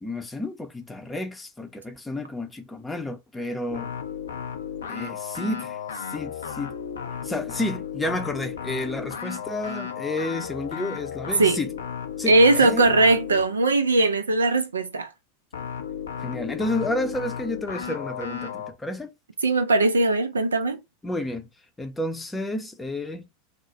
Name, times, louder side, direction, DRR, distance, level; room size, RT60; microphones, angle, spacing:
voice 1, 0.0-3.9 4.9-6.7 7.2-11.7 12.2-13.1 16.2-19.1 21.0-21.5 21.8-23.2, left 1 dB, 10° left, 0.6 m, -31 dB
sound 1, 3.7-13.6 15.5-18.7, left 7 dB, 80° left, 0.4 m, -34 dB
voice 2, 12.3-15.1 19.4-20.8, right 2 dB, 85° right, 0.4 m, -20 dB
2.4 x 2.1 x 3.9 m
hypercardioid pair, 90°, 0 cm